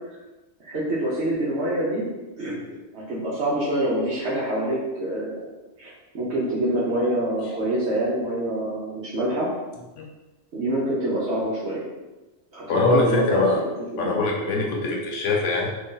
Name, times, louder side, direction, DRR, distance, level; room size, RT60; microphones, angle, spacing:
voice 1, 0.6-2.0 2.4-2.5 2.9-5.4 5.8-5.9 6.1-9.5 10.5-11.9 12.5-14.2 14.8-15.0, right 1 dB, 70° right, -7 dB, 1.0 m, -26 dB
voice 2, 12.7-13.6 14.0-15.7, left 3 dB, 85° left, -1 dB, 0.9 m, -23 dB
3.1 x 2.6 x 3.7 m, 1.1 s
omnidirectional pair, 1.2 m